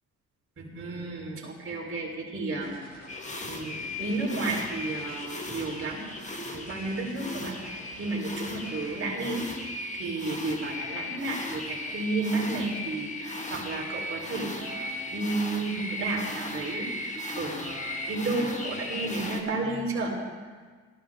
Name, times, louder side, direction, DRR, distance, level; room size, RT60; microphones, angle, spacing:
voice 1, 0.6-3.0 3.4-6.0 6.5-20.1, right 2 dB, 45° right, -3 dB, 4.4 m, -32 dB
sound 1, 2.6-8.9, left 1 dB, 45° left, 5.5 m, -49 dB
sound 2, 3.1-19.4, left 2 dB, 25° left, 1.8 m, -37 dB
18.5 x 13.0 x 3.8 m, 1.5 s
cardioid pair, 90°, 30 cm